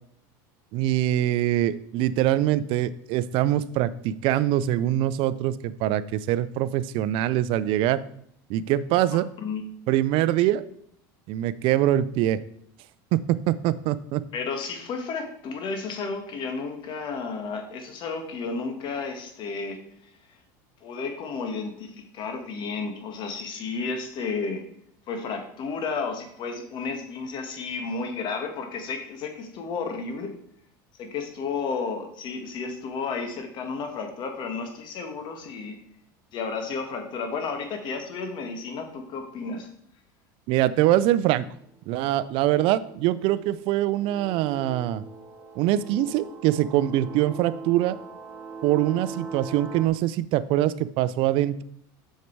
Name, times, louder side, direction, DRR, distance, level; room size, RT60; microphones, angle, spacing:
voice 1, 0.7-8.0 8.5-9.3 9.9-10.6 11.3-12.4 13.1-14.2 40.5-41.4 41.9-45.0 45.6-48.0 48.6-51.6, right 13 dB, 60° right, 15 dB, 0.5 m, -23 dB
voice 2, 14.3-19.8 20.8-24.6 25.1-30.3 31.0-35.8 36.3-39.7, left 4 dB, 50° left, 5 dB, 1.7 m, -32 dB
sound 1, 41.5-41.7 42.5-49.9, right 4 dB, 15° right, 1.2 m, -41 dB
6.6 x 6.5 x 4.6 m, 0.68 s
supercardioid pair, 110°, 10 cm